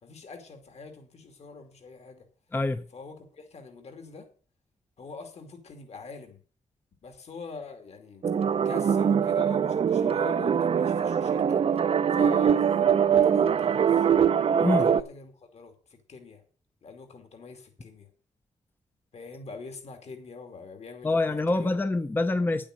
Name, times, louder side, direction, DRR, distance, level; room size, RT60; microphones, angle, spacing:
voice 1, 0.0-2.3 2.9-4.3 5.0-6.4 7.0-8.3 8.6-11.6 12.1-14.1 14.6-16.4 16.8-18.1 19.1-21.7, left 4 dB, 60° left, 2.6 m, -44 dB
voice 2, 2.5-2.8 14.6-14.9 21.0-22.7, left 2 dB, 15° left, 0.6 m, -25 dB
sound 1, 8.2-15.0, right 8 dB, 50° right, 0.6 m, -23 dB
10.0 x 8.8 x 6.5 m
wide cardioid pair, 135°, 13 cm